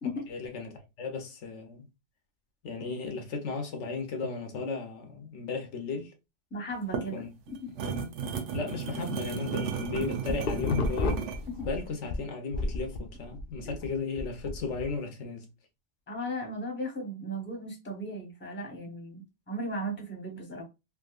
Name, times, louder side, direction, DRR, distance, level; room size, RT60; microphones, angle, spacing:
voice 1, 0.3-1.9 2.6-6.1 7.1-7.3 8.5-11.3 11.6-15.5, left 4 dB, 80° left, 1.0 m, -35 dB
voice 2, 6.5-7.2 7.6-7.7 11.5-11.7 13.6-13.7 16.1-20.6, equal, 10° left, 0.8 m, -36 dB
sound 1, 6.7-11.5, right 6 dB, 90° right, 1.0 m, -34 dB
sound 2, 9.8-12.2 12.5-14.9, left 3 dB, 60° left, 0.7 m, -32 dB
3.5 x 2.7 x 2.4 m
omnidirectional pair, 1.2 m